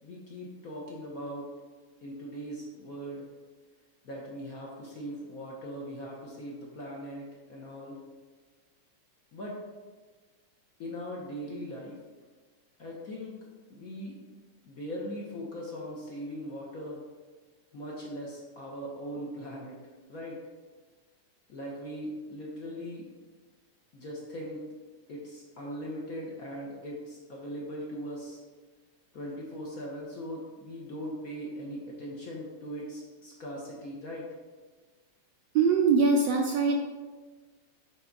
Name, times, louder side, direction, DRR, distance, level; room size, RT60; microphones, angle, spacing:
voice 1, 0.0-1.5 2.0-3.3 4.0-8.0 9.3-9.6 10.8-12.0 12.8-13.3 13.7-14.2 14.7-17.0 17.7-19.8 20.1-20.4 21.5-23.1 23.9-24.6 25.1-28.4 29.1-34.3, equal, 55° left, -3 dB, 1.1 m, -40 dB
voice 2, 35.5-36.8, right 4 dB, 75° right, 2 dB, 1.1 m, -22 dB
8.1 x 3.6 x 3.9 m, 1.4 s
omnidirectional pair, 2.4 m